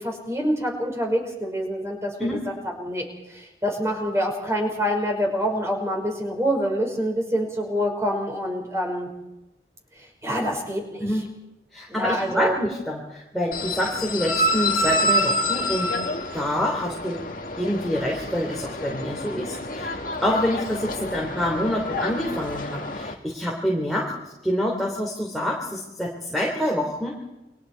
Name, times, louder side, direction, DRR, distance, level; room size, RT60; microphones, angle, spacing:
voice 1, 0.0-2.5 2.8-9.1 10.2-11.0 11.9-12.6, equal, 15° right, 2 dB, 5.3 m, -26 dB
voice 2, 11.7-15.9 16.3-17.2 17.6-24.1 24.4-27.2, equal, ahead, -3 dB, 3.3 m, -26 dB
sound 1, 13.5-23.1, left 1 dB, 50° left, 2.1 m, -28 dB
29.5 x 23.5 x 4.7 m, 0.96 s
head